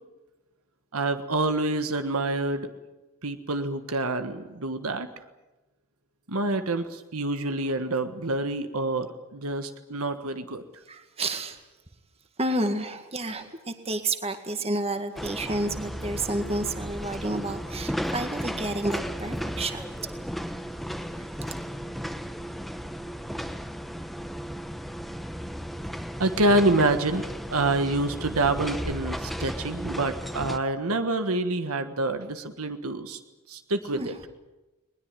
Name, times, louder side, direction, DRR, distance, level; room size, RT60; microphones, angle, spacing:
voice 1, 0.9-2.7 3.2-5.1 6.3-10.6 26.2-27.2 27.5-33.2 33.5-34.1, right 2 dB, 75° right, 8 dB, 1.5 m, -27 dB
voice 2, 10.9-11.6 12.4-19.9 21.1-21.3 33.9-34.1, right 2 dB, 25° right, 7 dB, 1.9 m, -30 dB
sound 1, 15.2-30.6, equal, ahead, 0.9 m, -35 dB
21.0 x 20.5 x 9.0 m, 1.0 s
head